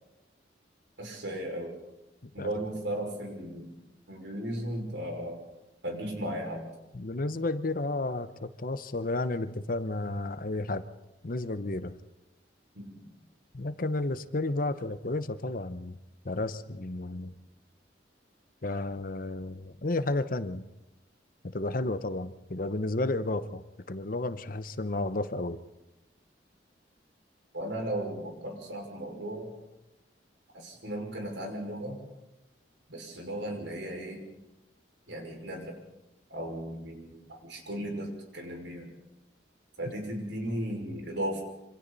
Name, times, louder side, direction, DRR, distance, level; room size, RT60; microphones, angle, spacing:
voice 1, 1.0-1.8 2.3-3.8 4.1-5.4 5.8-6.7 12.7-13.1 27.5-29.5 30.5-32.0 32.9-34.2 35.1-35.8 36.3-38.9 39.8-41.4, right 1 dB, 90° right, 2 dB, 5.6 m, -36 dB
voice 2, 6.9-10.9 11.2-11.9 13.5-16.0 16.2-17.4 18.6-20.7 21.4-25.6, left 2 dB, 50° left, 12 dB, 0.9 m, -32 dB
26.5 x 26.0 x 4.1 m, 0.92 s
head